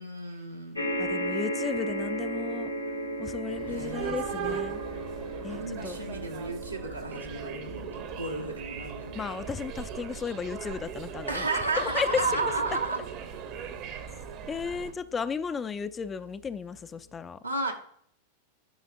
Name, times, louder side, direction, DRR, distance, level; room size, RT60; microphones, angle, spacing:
voice 1, 0.0-1.0 3.7-4.6 5.5-9.2 11.3-13.1 17.4-17.7, right 3 dB, 85° right, 1.1 m, -33 dB
sound 1, 0.7-15.3 16.1-16.2 16.4-16.5, right 1 dB, 85° left, 1.0 m, -37 dB
voice 2, 1.0-2.7 3.2-4.8 5.4-6.0 9.1-11.5 11.8-12.1 12.4-12.5 14.5-17.4, left 6 dB, 20° left, 0.3 m, -34 dB
sound 2, 3.5-14.9, right 8 dB, 40° right, 0.8 m, -39 dB
9.3 x 5.6 x 2.4 m
figure-of-eight pair, 90°, 0 cm